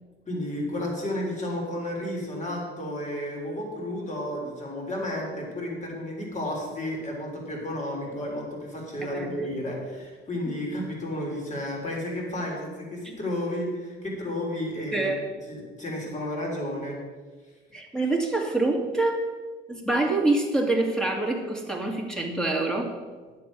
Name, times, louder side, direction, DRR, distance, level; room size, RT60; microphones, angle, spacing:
voice 1, 0.3-15.1 15.5-17.0, left 1 dB, 35° left, -1 dB, 3.9 m, -32 dB
voice 2, 14.9-15.3 17.7-19.2 19.7-23.0, right 2 dB, 5° left, 1 dB, 2.2 m, -26 dB
10.5 x 7.5 x 6.2 m, 1.5 s
cardioid pair, 90°, 20 cm